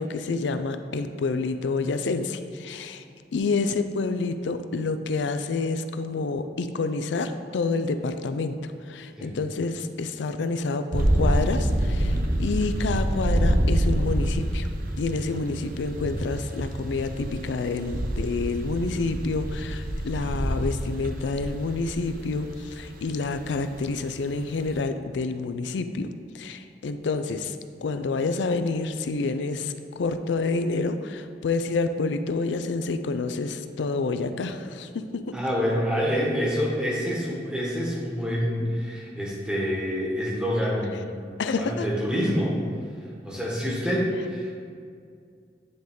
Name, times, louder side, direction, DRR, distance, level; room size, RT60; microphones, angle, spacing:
voice 1, 0.0-3.0 3.3-14.7 15.0-26.1 26.3-35.3 41.4-41.8, left 3 dB, 80° left, 9 dB, 0.4 m, -28 dB
sound 1, 10.9-24.8, right 1 dB, 50° right, 0.6 m, -27 dB
voice 2, 35.3-42.6 43.2-44.5, equal, 5° right, -5 dB, 1.2 m, -27 dB
9.8 x 3.8 x 3.6 m, 2.2 s
head